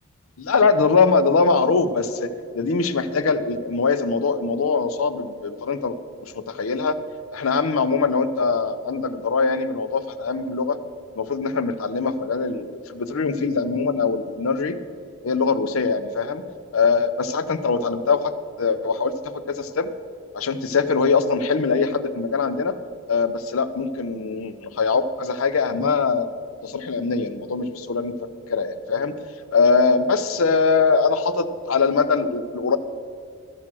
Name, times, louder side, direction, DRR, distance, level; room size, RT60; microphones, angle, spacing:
voice 1, 0.4-6.0 6.2-7.0 7.3-10.8 11.2-14.8 15.2-16.4 16.7-19.9 20.3-22.7 23.1-26.3 26.6-29.2 29.5-32.8, left 4 dB, 85° left, 11 dB, 0.6 m, -22 dB
13.5 x 6.2 x 6.0 m, 2.3 s
head